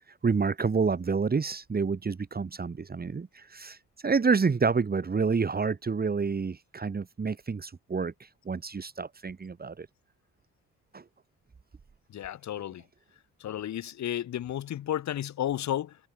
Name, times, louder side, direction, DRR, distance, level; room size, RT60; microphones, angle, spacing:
voice 1, 0.2-9.9 10.9-11.0, right 5 dB, 30° right, 2.9 m, -28 dB
voice 2, 12.1-12.8 13.4-16.0, left 11 dB, 65° left, 1.8 m, -32 dB
cardioid pair, 90°, 30 cm